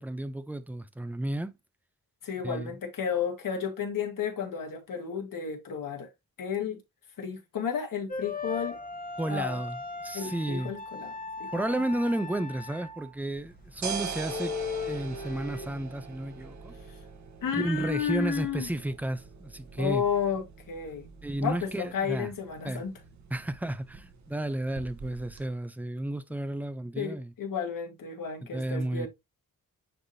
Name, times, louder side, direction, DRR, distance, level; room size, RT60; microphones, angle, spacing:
voice 1, 0.0-1.5 2.4-2.7 9.2-10.7 11.5-14.5 14.8-16.8 17.5-20.0 21.2-22.3 22.6-22.8 23.3-27.3 28.5-29.1, right 1 dB, 5° right, 0.5 m, -32 dB
voice 2, 2.2-6.1 6.4-6.8 7.2-8.8 9.3-9.6 10.1-11.1 11.4-11.5 17.4-18.7 19.8-21.1 21.4-22.9 27.0-29.1, left 7 dB, 70° left, 2.0 m, -32 dB
sound 1, 8.1-13.2 13.6-13.7 14.2-15.8, left 4 dB, 25° left, 1.1 m, -38 dB
sound 2, 13.3-25.4, right 5 dB, 55° right, 1.1 m, -43 dB
9.8 x 3.5 x 2.7 m
wide cardioid pair, 155°, 34 cm